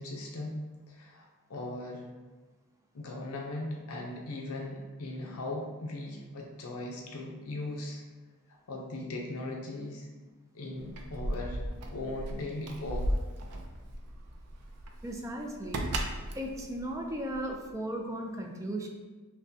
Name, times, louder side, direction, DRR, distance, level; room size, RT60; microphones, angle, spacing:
voice 1, 0.0-2.1 2.9-8.0 8.5-10.1 10.5-11.6 11.9-13.2, left 2 dB, 70° left, 0 dB, 0.6 m, -39 dB
Keys jangling, 10.8-17.7, right 1 dB, 90° right, 0.5 m, -36 dB
voice 2, 15.0-15.9 16.3-18.9, right 1 dB, 15° right, 2 dB, 0.4 m, -36 dB
6.0 x 2.2 x 2.7 m, 1.3 s
head